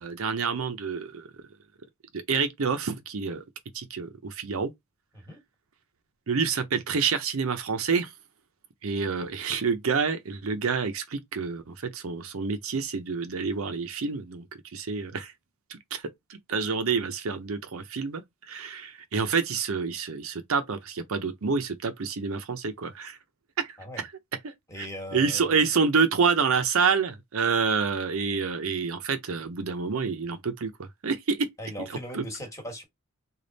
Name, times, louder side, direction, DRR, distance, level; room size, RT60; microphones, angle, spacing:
voice 1, 0.0-1.3 2.1-3.4 3.7-4.7 6.3-8.1 8.8-14.4 14.7-15.3 15.7-16.0 16.3-23.2 23.6-23.7 24.4-24.9 25.1-31.5 32.1-32.2, right 5 dB, 70° right, 0.6 m, -28 dB
voice 2, 24.7-25.7 31.6-32.8, equal, 15° left, 1.3 m, -39 dB
3.4 x 2.3 x 3.9 m
head